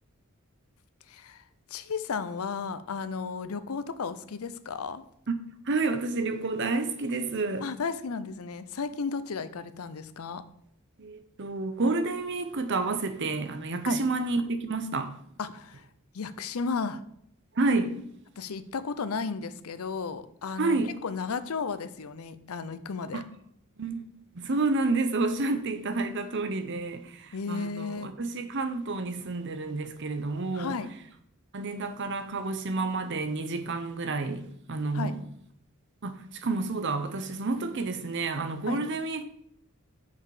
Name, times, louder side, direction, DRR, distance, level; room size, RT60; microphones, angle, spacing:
voice 1, 1.1-1.4 1.7-5.0 7.6-10.4 13.8-14.0 15.4-15.9 16.1-17.0 18.4-20.8 21.0-23.2 27.3-28.1 30.5-30.9 34.9-35.2 38.7-38.8, left 5 dB, 85° left, 0.6 m, -34 dB
voice 2, 5.7-7.7 11.0-15.1 17.6-18.0 20.6-20.9 23.1-23.2 23.8-30.7 31.5-35.1 36.0-39.2, right 3 dB, 55° right, 0.8 m, -30 dB
6.6 x 5.6 x 4.9 m
head